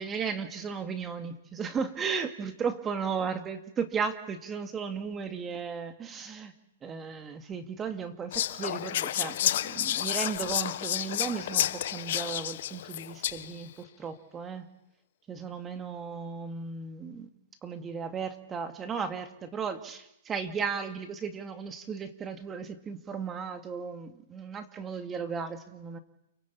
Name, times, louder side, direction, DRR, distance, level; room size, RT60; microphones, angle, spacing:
voice 1, 0.0-6.5 6.8-9.4 9.6-14.7 15.3-17.3 17.6-26.0, right 6 dB, 15° right, 8 dB, 2.2 m, -35 dB
Whispering, 8.3-13.6, left 12 dB, 60° left, 1.1 m, -30 dB
29.5 x 23.5 x 8.6 m, 0.83 s
hypercardioid pair, 145°, 0 cm